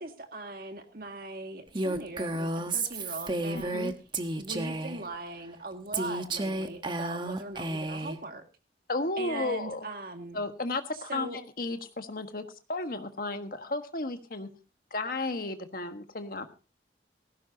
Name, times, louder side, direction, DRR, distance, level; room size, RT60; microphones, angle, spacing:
voice 1, 0.0-3.9 4.3-8.4 9.2-10.4 10.9-11.4, right 2 dB, 55° right, 5 dB, 2.0 m, -40 dB
Female speech woman speaking, 1.7-5.0 5.9-8.2, right 2 dB, 25° right, 1.1 m, -32 dB
voice 2, 3.5-3.9 8.9-9.9 10.3-12.4 12.7-14.5 14.9-16.5, left 2 dB, 50° left, 8 dB, 1.5 m, -33 dB
18.5 x 16.0 x 2.8 m, 0.30 s
head